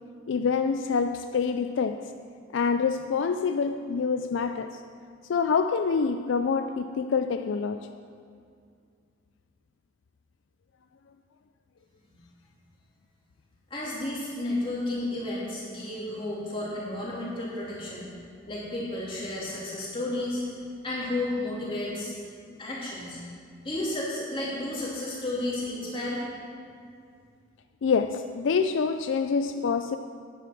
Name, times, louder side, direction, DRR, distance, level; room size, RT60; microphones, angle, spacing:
voice 1, 0.3-2.1 2.5-4.8 5.3-7.9 27.8-30.0, left 5 dB, 70° left, 8 dB, 0.4 m, -26 dB
voice 2, 13.7-18.1 18.5-20.4 20.8-22.1 22.6-23.2 23.6-26.3, left 1 dB, 25° left, -6 dB, 3.0 m, -32 dB
10.5 x 9.3 x 6.0 m, 2.3 s
head